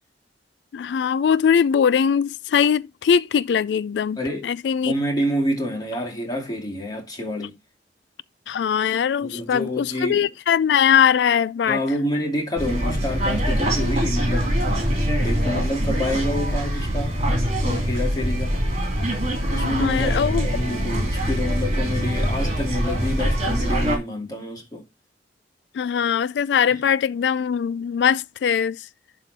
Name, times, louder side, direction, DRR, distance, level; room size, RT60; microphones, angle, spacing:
voice 1, 0.7-4.2 4.4-4.9 8.5-11.8 19.6-20.5 25.7-28.8, left 7 dB, 70° left, 0.3 m, -21 dB
voice 2, 4.2-4.5 4.8-7.5 9.2-10.3 11.6-14.6 15.2-17.2 17.6-18.6 19.5-24.8 26.7-26.8, equal, 25° left, 2.5 m, -28 dB
sound 1, 12.6-24.0, equal, 40° right, 2.9 m, -23 dB
11.5 x 3.8 x 4.0 m
head